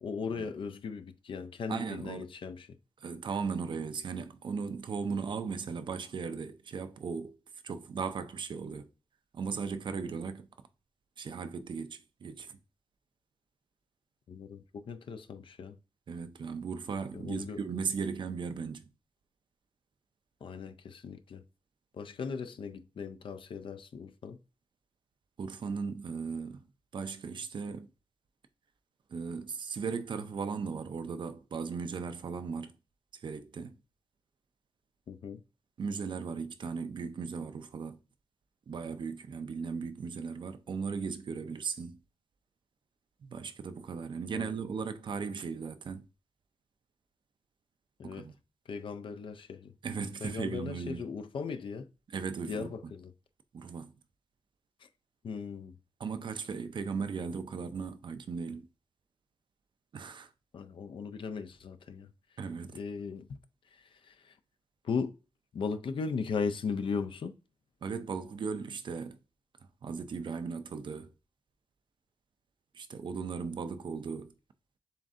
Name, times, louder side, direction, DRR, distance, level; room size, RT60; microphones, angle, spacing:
voice 1, 0.0-2.7 14.3-15.8 17.1-17.6 20.4-21.4 22.0-24.4 35.1-35.4 44.3-44.5 48.0-48.3 48.7-49.7 50.2-51.9 52.5-53.1 54.8-54.9 55.2-55.8 60.5-62.1 62.7-63.3 63.7-64.3 64.8-65.1 65.5-67.3, left 5 dB, 60° left, 0.4 m, -37 dB
voice 2, 1.7-2.2 3.0-7.3 7.6-8.9 9.3-10.5 11.2-12.6 16.1-18.9 25.4-26.6 26.9-27.9 29.1-32.7 33.2-33.8 35.8-38.0 38.7-42.0 43.2-46.0 48.0-48.3 49.8-51.1 52.1-52.9 53.5-53.9 56.0-58.7 59.9-60.3 62.4-62.8 67.8-69.2 69.8-71.1 72.7-74.3, right 5 dB, 55° right, 0.5 m, -37 dB
7.2 x 2.6 x 2.5 m
wide cardioid pair, 135°, 10 cm